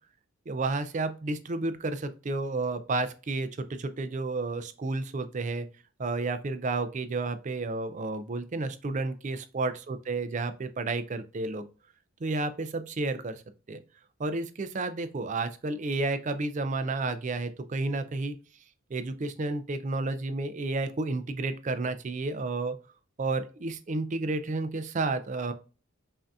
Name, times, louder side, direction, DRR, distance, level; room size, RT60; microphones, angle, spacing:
voice 1, 0.5-5.7 6.0-11.6 12.2-13.4 13.7-13.8 14.2-18.3 18.9-22.8 23.2-25.5, right 3 dB, 35° right, 11 dB, 0.4 m, -31 dB
5.6 x 2.7 x 2.4 m, 0.35 s
head